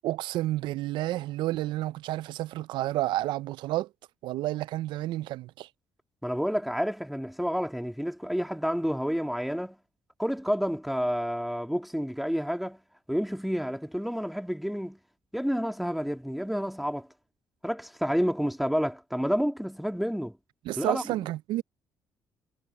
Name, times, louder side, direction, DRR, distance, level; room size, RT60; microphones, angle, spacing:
voice 1, 0.0-3.9 4.2-5.7 20.6-21.6, right 16 dB, 80° right, 0.5 m, -30 dB
voice 2, 6.2-9.8 10.2-12.8 13.1-15.0 15.3-17.1 17.6-20.4 20.8-21.0, equal, ahead, 2.5 m, -29 dB
supercardioid pair, 80°, 8 cm